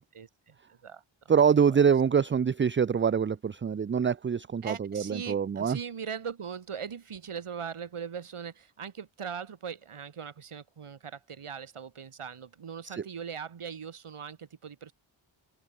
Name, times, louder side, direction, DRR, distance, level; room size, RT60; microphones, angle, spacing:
voice 1, 0.1-1.3 1.7-1.8 4.6-14.9, right 7 dB, 90° right, 6.8 m, -40 dB
voice 2, 1.3-5.8 12.9-13.0, right 7 dB, 25° right, 0.4 m, -25 dB
open air
wide cardioid pair, 95°, 49 cm